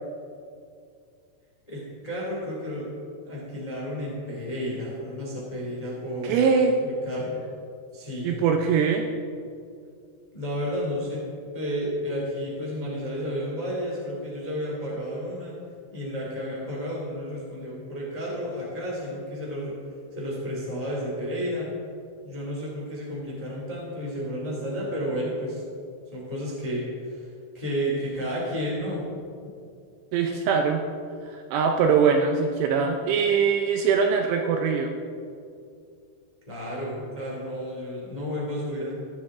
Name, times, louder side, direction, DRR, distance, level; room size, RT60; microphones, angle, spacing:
voice 1, 1.7-2.9 3.2-6.4 6.8-7.4 7.9-8.4 10.3-11.2 11.5-15.5 15.9-19.8 20.1-21.7 22.2-25.6 26.1-29.0 36.5-38.9, equal, 15° left, -4 dB, 1.4 m, -32 dB
voice 2, 6.2-6.8 8.2-9.1 30.1-30.8 31.3-34.9, right 6 dB, 80° right, 3 dB, 2.6 m, -22 dB
15.0 x 11.5 x 3.7 m, 2.4 s
omnidirectional pair, 5.5 m